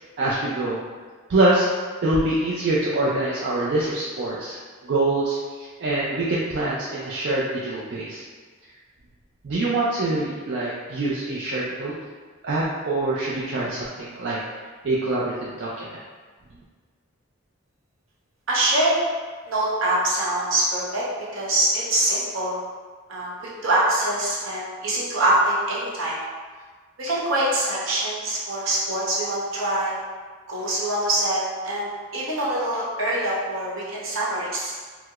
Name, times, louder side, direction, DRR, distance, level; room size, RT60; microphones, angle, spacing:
voice 1, 0.2-0.8 1.3-1.7 2.0-4.6 4.8-8.2 9.4-11.9 12.4-14.4 14.8-16.0, right 2 dB, 60° right, -6 dB, 0.4 m, -24 dB
voice 2, 18.5-19.0 19.5-21.0 21.3-22.6 23.1-26.2 27.0-30.0 30.5-34.7, right 1 dB, 75° right, -7 dB, 0.9 m, -24 dB
4.5 x 2.0 x 2.3 m, 1.5 s
head